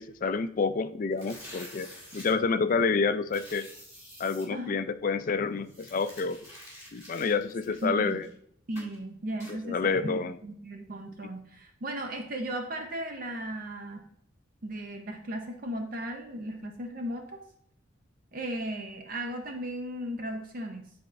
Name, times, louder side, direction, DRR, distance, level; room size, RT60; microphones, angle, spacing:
voice 1, 0.0-3.7 4.2-6.4 6.9-8.3 9.5-10.4, left 4 dB, 40° left, 11 dB, 0.3 m, -28 dB
sound 1, 1.1-2.3 3.3-4.5 5.7-8.3 8.8-9.0 9.4-9.6, equal, 15° right, 2.0 m, -48 dB
voice 2, 4.5-4.8 7.8-8.2 8.7-14.0 14.6-17.4 18.3-20.9, right 1 dB, 45° right, 4 dB, 0.6 m, -36 dB
9.7 x 4.2 x 2.5 m, 0.68 s
head